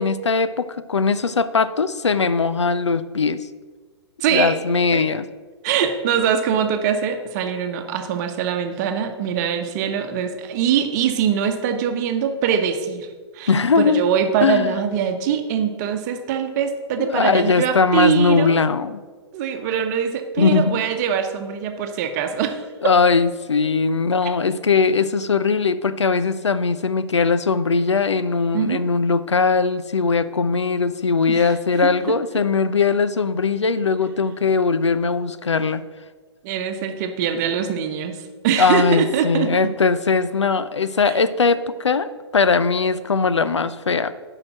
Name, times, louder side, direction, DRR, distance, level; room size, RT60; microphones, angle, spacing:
voice 1, 0.0-3.5 4.3-5.3 13.5-14.0 14.4-14.8 17.0-19.0 20.4-20.8 22.8-35.8 38.6-44.1, left 4 dB, 80° left, 14 dB, 0.5 m, -20 dB
voice 2, 4.2-4.6 4.9-5.1 5.6-13.1 13.3-13.5 13.8-18.6 19.3-22.6 28.5-28.8 31.3-31.5 31.8-31.9 36.4-39.5 41.0-41.1, right 8 dB, 40° right, 7 dB, 1.0 m, -23 dB
10.5 x 5.0 x 5.9 m, 1.4 s
figure-of-eight pair, 115°, 15 cm